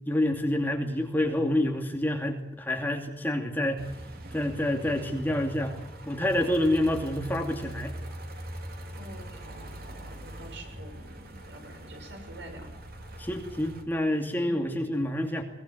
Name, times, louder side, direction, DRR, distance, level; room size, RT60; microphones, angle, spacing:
voice 1, 0.1-3.9 4.3-5.8 6.1-7.9 13.2-15.4, left 1 dB, 10° left, 3 dB, 2.6 m, -28 dB
sound 1, 3.8-13.8, right 1 dB, 55° right, 3.5 m, -42 dB
voice 2, 9.0-12.7 14.4-14.7, right 1 dB, 70° right, 3 dB, 7.5 m, -46 dB
22.5 x 20.0 x 8.0 m, 0.79 s
head